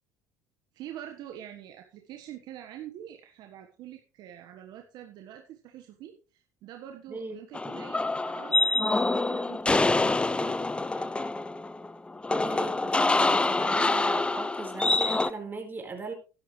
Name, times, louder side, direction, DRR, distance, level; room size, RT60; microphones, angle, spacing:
voice 1, 0.7-11.3, right 11 dB, 60° right, 4 dB, 1.4 m, -45 dB
voice 2, 7.1-7.5 12.3-16.1, right 3 dB, 25° right, 3 dB, 4.5 m, -39 dB
sound 1, 7.5-15.3, left 2 dB, 15° left, 0.6 m, -26 dB
12.5 x 11.5 x 3.3 m, 0.33 s
hypercardioid pair, 70°, 8 cm